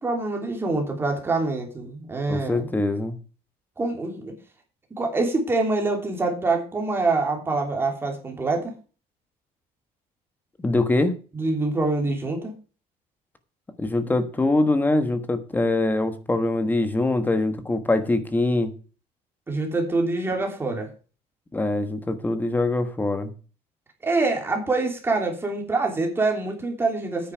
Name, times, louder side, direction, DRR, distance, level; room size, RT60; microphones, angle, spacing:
voice 1, 0.0-2.7 3.8-4.3 4.9-8.7 11.3-12.5 19.5-20.9 24.0-27.3, right 3 dB, 15° right, 2 dB, 3.1 m, -25 dB
voice 2, 2.3-3.2 10.6-11.2 13.8-18.7 21.5-23.3, left 2 dB, 10° left, 10 dB, 1.3 m, -23 dB
9.5 x 9.4 x 5.1 m, 0.35 s
cardioid pair, 175°, 16 cm